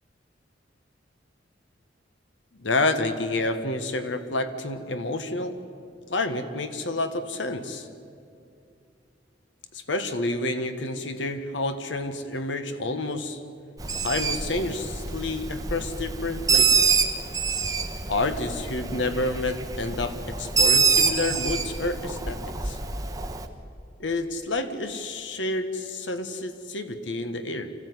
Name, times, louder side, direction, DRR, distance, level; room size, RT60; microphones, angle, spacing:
voice 1, 2.6-5.6 6.1-7.9 9.7-13.4 14.0-17.1 18.1-22.8 24.0-27.7, left 2 dB, 80° left, 9 dB, 1.5 m, -29 dB
Bird, 13.8-23.4, right 5 dB, 20° right, 1.2 m, -26 dB
26.0 x 15.5 x 9.7 m, 2.4 s
head